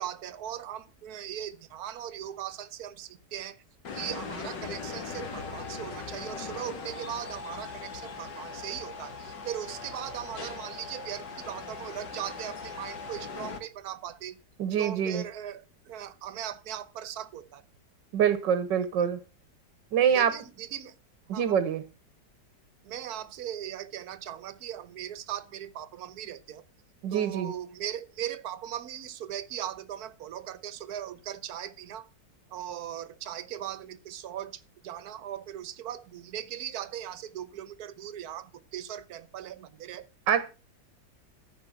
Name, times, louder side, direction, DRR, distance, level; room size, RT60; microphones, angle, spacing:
voice 1, 0.0-3.6 3.9-14.4 14.8-17.6 20.1-21.0 21.3-21.6 22.8-26.6 27.1-32.1 32.5-40.1, right 10 dB, 65° right, 1.4 m, -39 dB
sound 1, 3.8-13.6, left 5 dB, 85° left, 2.3 m, -40 dB
voice 2, 14.6-15.2 18.1-19.2 19.9-20.3 21.3-21.8 27.0-27.5 40.3-40.5, right 8 dB, 90° right, 1.7 m, -25 dB
14.0 x 5.3 x 5.7 m
omnidirectional pair, 1.9 m